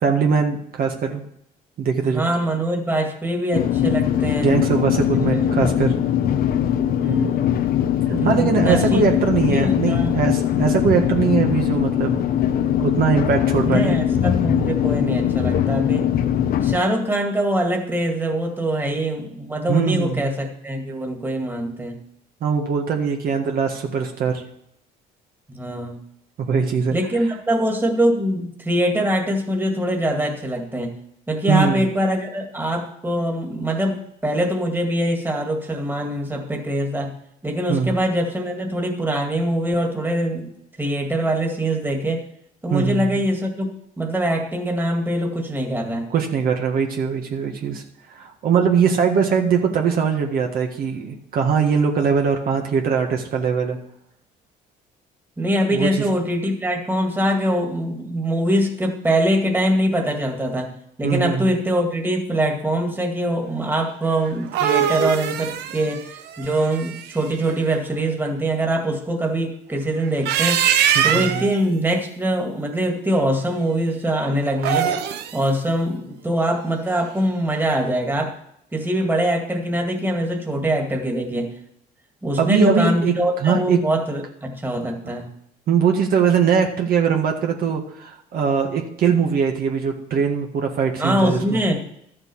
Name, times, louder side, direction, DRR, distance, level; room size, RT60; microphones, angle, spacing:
voice 1, 0.0-1.2 1.8-2.2 4.4-5.9 8.2-12.2 12.6-14.0 19.7-20.3 22.4-24.4 26.4-26.9 31.5-31.9 37.7-38.0 42.7-43.2 46.1-47.8 48.1-53.8 55.7-56.0 61.0-61.5 70.9-71.4 82.4-83.8 85.0-85.1 85.7-91.6, right 6 dB, 60° right, 2 dB, 1.7 m, -21 dB
voice 2, 2.0-4.5 5.3-5.5 6.4-6.5 7.0-7.5 8.1-9.0 9.5-10.2 13.6-16.1 16.6-22.0 25.5-26.0 26.9-30.9 31.3-37.1 37.4-42.2 42.6-46.0 55.4-60.7 61.0-70.7 71.0-74.9 75.3-78.4 78.7-81.5 82.2-85.3 91.0-91.8, right 1 dB, 10° right, 2 dB, 2.1 m, -23 dB
sound 1, 3.5-16.8, left 10 dB, 60° left, 0.8 m, -21 dB
sound 2, 64.3-67.3 70.0-71.5 74.5-75.4, right 9 dB, 80° right, 0.9 m, -22 dB
12.5 x 7.7 x 5.6 m, 0.72 s
cardioid pair, 110°, 17 cm